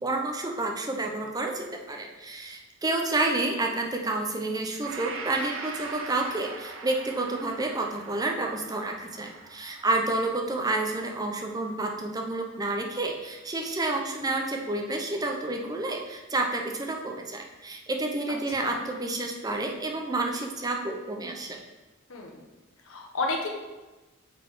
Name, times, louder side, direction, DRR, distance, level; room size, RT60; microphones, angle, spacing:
voice 1, 0.0-21.6, right 2 dB, 20° right, 2 dB, 0.6 m, -30 dB
Gong, 4.8-12.9, right 4 dB, 90° right, 0.6 m, -43 dB
voice 2, 18.3-18.8 22.1-22.5 22.9-23.5, left 3 dB, 85° left, 1 dB, 1.0 m, -32 dB
5.9 x 3.9 x 4.7 m, 1.2 s
head